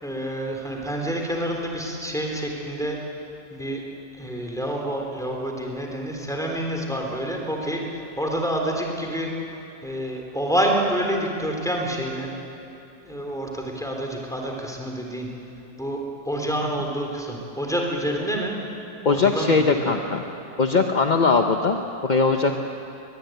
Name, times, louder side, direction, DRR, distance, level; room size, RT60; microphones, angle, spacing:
voice 1, 0.0-3.0 3.5-3.8 4.2-9.3 9.8-12.3 13.1-15.3 15.8-16.0 16.3-18.5 19.1-20.0, right 1 dB, ahead, 0 dB, 3.7 m, -28 dB
voice 2, 19.0-20.3 20.6-22.6, left 4 dB, 35° left, 4 dB, 0.7 m, -20 dB
23.0 x 21.0 x 9.3 m, 2.8 s
omnidirectional pair, 1.9 m